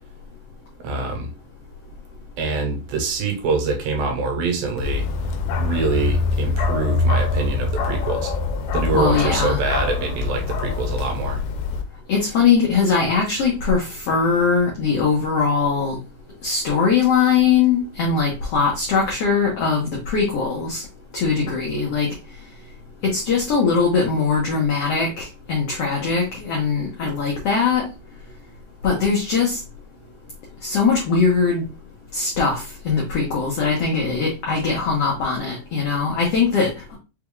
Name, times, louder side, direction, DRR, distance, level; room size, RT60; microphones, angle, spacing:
voice 1, 0.8-1.3 2.4-5.1 5.6-8.3 8.7-11.4, right 4 dB, 80° right, 3 dB, 2.8 m, -25 dB
Bark, 4.8-11.8, left 4 dB, 85° left, 2.4 m, -24 dB
voice 2, 8.9-9.6 12.1-16.0 16.4-20.8 21.1-22.1 23.0-27.8 28.8-29.6 30.6-31.6 32.1-37.0, left 5 dB, 65° left, -2 dB, 1.5 m, -21 dB
5.9 x 3.4 x 2.3 m, 0.28 s
omnidirectional pair, 4.1 m